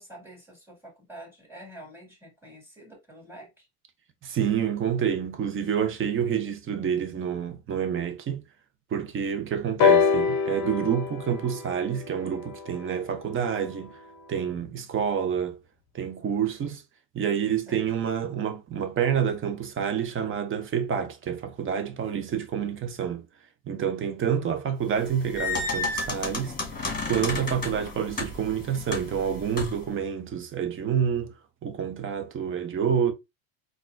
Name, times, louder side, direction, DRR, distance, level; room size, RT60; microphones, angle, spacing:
voice 1, 0.0-3.7 17.7-18.0, right 1 dB, 5° right, 2.2 m, -47 dB
voice 2, 4.2-8.4 8.9-14.0 14.3-15.6 15.9-16.8 17.1-23.2 23.7-26.5 27.0-31.3 31.6-33.1, right 8 dB, 25° right, 0.6 m, -28 dB
sound 1, 9.8-13.6 14.6-14.7, left 6 dB, 40° left, 0.7 m, -25 dB
sound 2, 24.9-29.9, left 3 dB, 20° left, 1.2 m, -32 dB
3.9 x 2.4 x 2.5 m
supercardioid pair, 110°, 47 cm